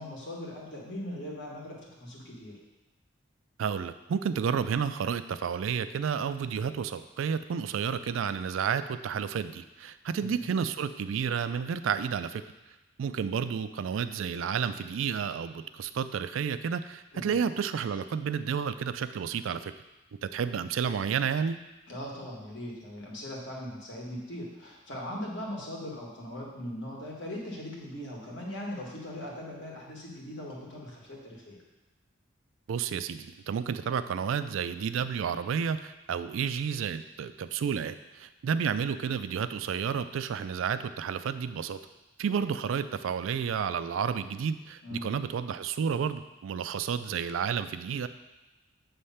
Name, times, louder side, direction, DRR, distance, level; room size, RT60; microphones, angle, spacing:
voice 1, 0.0-2.5 10.1-10.4 17.1-17.4 21.9-31.6 44.8-45.1, left 1 dB, 65° left, -3 dB, 1.6 m, -40 dB
voice 2, 3.6-12.4 13.0-19.7 20.2-21.6 32.7-41.8 42.2-48.1, right 7 dB, 80° right, 12 dB, 0.3 m, -31 dB
7.3 x 3.3 x 5.6 m, 1.0 s
head